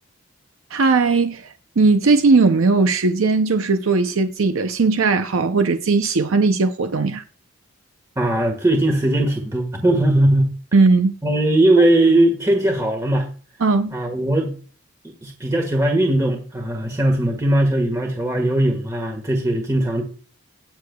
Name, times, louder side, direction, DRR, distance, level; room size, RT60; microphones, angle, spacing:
voice 1, 0.7-7.2 10.7-11.1 13.6-13.9, right 3 dB, 65° right, 0.6 m, -18 dB
voice 2, 8.2-10.5 11.2-13.3 13.9-14.5 15.2-20.1, right 1 dB, 15° right, 1.4 m, -19 dB
19.5 x 6.7 x 2.3 m
head